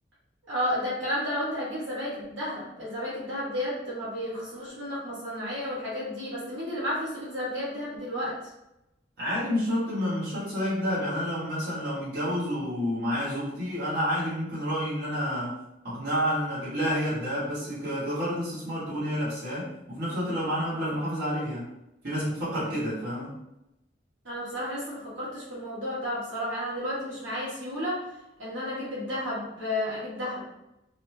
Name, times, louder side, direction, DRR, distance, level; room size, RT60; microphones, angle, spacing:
voice 1, 0.5-8.3 24.2-28.0 28.4-30.5, left 1 dB, 80° right, -8 dB, 1.4 m, -32 dB
voice 2, 9.2-15.6 15.8-21.6 22.0-23.3, equal, 55° right, -10 dB, 1.3 m, -29 dB
3.1 x 2.2 x 3.2 m, 0.89 s
head